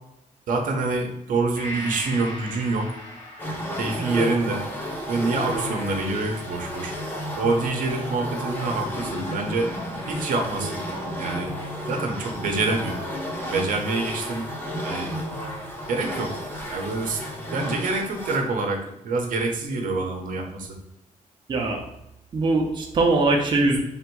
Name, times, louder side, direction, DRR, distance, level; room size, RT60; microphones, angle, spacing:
voice 1, 0.5-2.9 3.8-4.6 5.1-7.0 7.3-9.7 10.1-10.8 11.2-11.5 11.9-13.0 13.5-14.5 14.8-15.1 15.9-17.2 17.5-20.8, right 3 dB, 75° right, 3 dB, 0.7 m, -26 dB
Gong, 1.6-9.2 9.6-9.7, equal, 40° left, 1.3 m, -41 dB
sound 1, 3.4-18.5, equal, 15° left, 0.7 m, -32 dB
voice 2, 21.5-21.8 22.3-23.8, right 2 dB, 35° right, 1 dB, 0.6 m, -21 dB
3.5 x 2.6 x 4.5 m, 0.86 s
wide cardioid pair, 155°, 14 cm